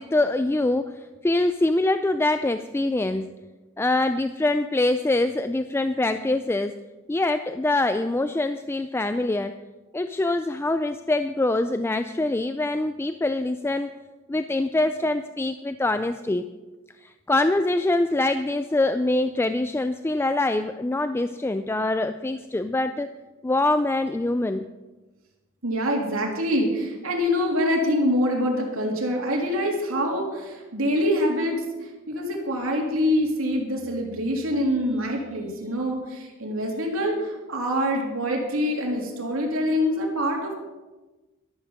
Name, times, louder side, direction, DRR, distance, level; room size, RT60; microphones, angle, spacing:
voice 1, 0.0-3.3 3.8-6.8 7.1-9.5 9.9-13.9 14.3-16.4 17.0-23.1 23.4-24.7, left 2 dB, 10° left, 9 dB, 0.3 m, -24 dB
voice 2, 25.6-40.5, equal, 80° right, 0 dB, 3.1 m, -25 dB
13.0 x 12.5 x 5.1 m, 1.2 s
head